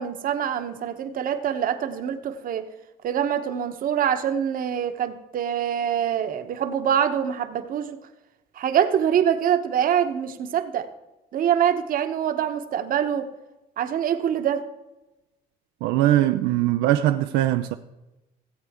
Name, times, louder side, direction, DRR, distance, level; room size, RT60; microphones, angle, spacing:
voice 1, 0.0-2.6 3.0-8.0 8.5-10.9 11.3-13.2 13.8-14.6, right 9 dB, 55° right, 1.0 m, -24 dB
voice 2, 15.8-17.8, right 13 dB, 90° right, 0.4 m, -21 dB
17.0 x 8.1 x 3.6 m
cardioid pair, 110°, 17 cm